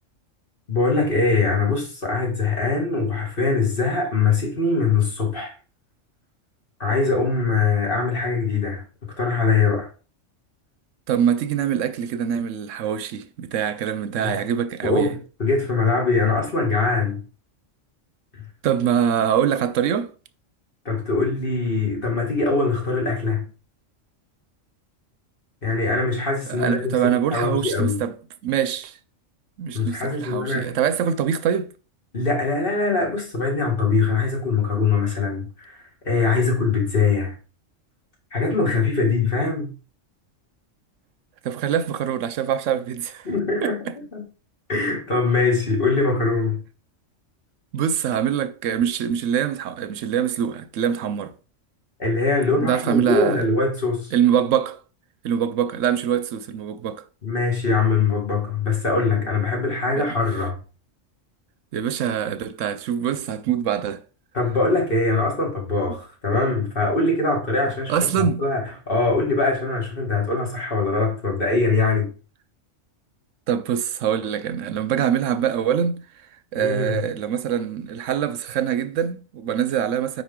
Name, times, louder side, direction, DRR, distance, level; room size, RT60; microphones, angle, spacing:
voice 1, 0.7-5.5 6.8-8.8 9.2-9.9 14.2-14.3 14.8-17.2 20.9-23.5 25.6-27.0 27.3-28.0 29.7-30.7 32.1-37.3 38.3-39.7 43.3-43.8 44.1-44.2 44.7-46.6 52.0-54.1 57.2-60.6 64.3-72.1 76.6-77.0, left 3 dB, 45° left, 2.2 m, -22 dB
voice 2, 11.1-15.2 18.6-20.1 26.5-28.2 28.4-29.0 29.6-31.7 41.4-43.3 43.6-43.9 47.7-51.4 52.6-53.5 54.1-54.8 55.2-57.1 59.9-60.1 61.7-64.0 65.9-66.0 67.9-68.4 73.5-80.2, right 9 dB, 80° right, 1.0 m, -24 dB
9.4 x 3.9 x 3.7 m
omnidirectional pair, 1.3 m